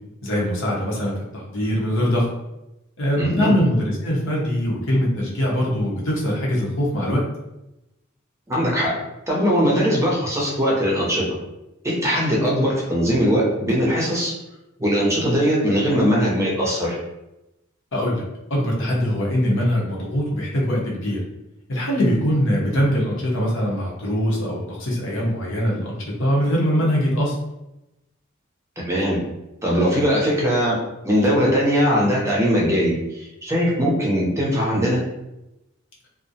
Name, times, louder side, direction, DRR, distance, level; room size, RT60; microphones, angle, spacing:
voice 1, 0.2-2.3 3.0-7.2 17.9-18.2 18.5-21.2 21.7-27.3, equal, 70° left, -4 dB, 0.7 m, -22 dB
voice 2, 3.2-3.5 8.5-8.9 9.3-11.2 11.8-14.3 14.8-17.0 28.8-29.2 29.6-30.8 31.0-35.0, equal, 15° right, -4 dB, 0.6 m, -20 dB
2.4 x 2.0 x 2.7 m, 0.92 s
head